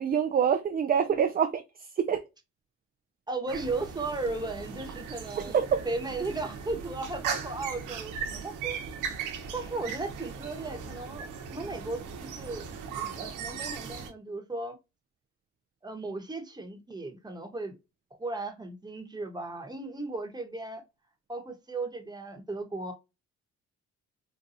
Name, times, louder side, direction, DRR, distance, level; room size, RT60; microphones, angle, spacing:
voice 1, 0.0-1.6 2.0-2.2 5.5-5.8, right 7 dB, 30° right, 0.4 m, -25 dB
voice 2, 3.3-8.8 9.5-12.6 13.0-14.8 15.8-17.8 18.2-20.8 21.3-22.9, right 3 dB, 15° right, 1.0 m, -36 dB
sound 1, 3.5-14.1, right 6 dB, 85° right, 0.9 m, -38 dB
4.2 x 2.2 x 2.6 m
cardioid pair, 90°, 30 cm